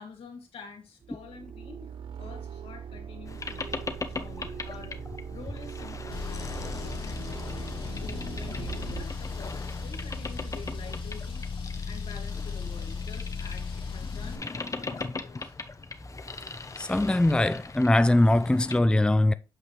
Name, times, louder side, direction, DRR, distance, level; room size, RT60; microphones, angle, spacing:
voice 1, 0.0-3.8 4.2-5.0 5.3-11.4 11.9-15.6, left 5 dB, 85° left, 1.8 m, -47 dB
sound 1, 1.0-9.1, right 8 dB, 60° right, 0.5 m, -41 dB
Boat Water vehicle, 3.3-18.8, left 3 dB, 35° left, 0.9 m, -40 dB
Car, 6.1-14.4, left 4 dB, 65° left, 2.1 m, -36 dB
voice 2, 16.8-19.3, left 1 dB, 10° left, 0.4 m, -21 dB
8.5 x 4.8 x 3.1 m
cardioid pair, 60°, 10 cm